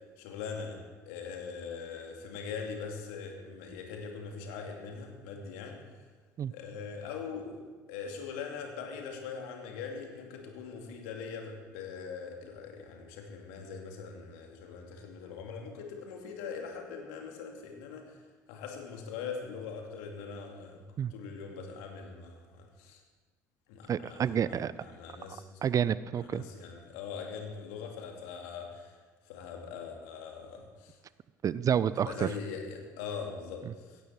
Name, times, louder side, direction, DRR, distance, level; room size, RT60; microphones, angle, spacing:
voice 1, 0.2-5.8 6.5-7.6 7.9-18.2 18.5-20.8 21.1-23.0 23.7-25.6 26.2-29.0 29.3-31.0 32.0-34.0, left 5 dB, 65° left, 2 dB, 2.5 m, -42 dB
voice 2, 23.9-24.7 25.3-25.4 25.6-26.4 31.4-32.3, right 8 dB, 35° right, 17 dB, 0.5 m, -29 dB
17.0 x 14.5 x 4.5 m, 1.4 s
figure-of-eight pair, 60°, 10 cm